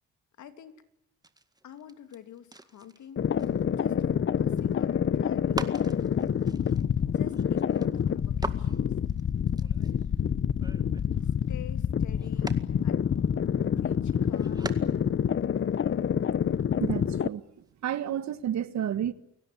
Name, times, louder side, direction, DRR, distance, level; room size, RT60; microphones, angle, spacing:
voice 1, 0.4-0.8 1.6-3.3 3.8-5.7 7.1-8.9 11.2-12.6 12.8-13.1 13.7-14.8, left 9 dB, 75° left, 3.0 m, -48 dB
sound 1, 1.2-4.9 5.3-12.8 13.1-13.7 14.1-15.3 15.5-15.6 15.8-16.4 17.7-17.8, right 2 dB, 15° right, 1.9 m, -43 dB
sound 2, 3.2-17.3, left 8 dB, 45° left, 0.9 m, -27 dB
voice 2, 16.8-17.4 17.8-19.1, right 10 dB, 65° right, 1.5 m, -30 dB
29.5 x 17.5 x 9.7 m
cardioid pair, 90°, 30 cm